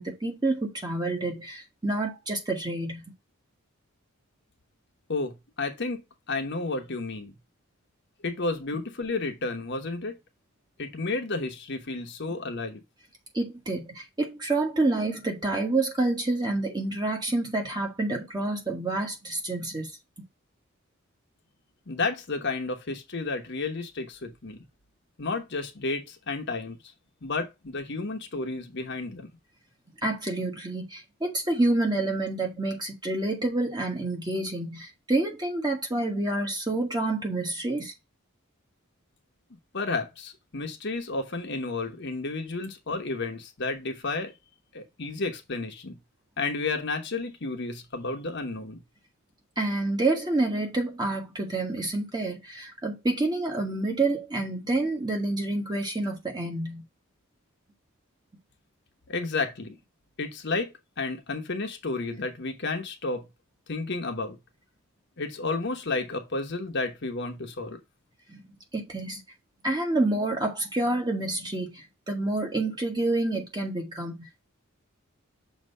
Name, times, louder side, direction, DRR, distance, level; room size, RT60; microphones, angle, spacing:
voice 1, 0.0-3.0 13.3-19.9 30.0-37.9 49.6-56.8 68.3-68.4 68.7-69.2 69.6-74.5, right 2 dB, 20° right, 1.4 m, -28 dB
voice 2, 5.1-6.0 6.3-7.3 8.2-10.2 10.8-12.8 21.9-24.6 25.2-26.8 27.2-29.3 39.7-44.3 44.7-46.0 46.4-48.8 59.1-59.7 60.2-63.3 63.7-64.4 65.2-67.8, left 3 dB, 55° left, 1.0 m, -31 dB
6.4 x 2.9 x 5.4 m
head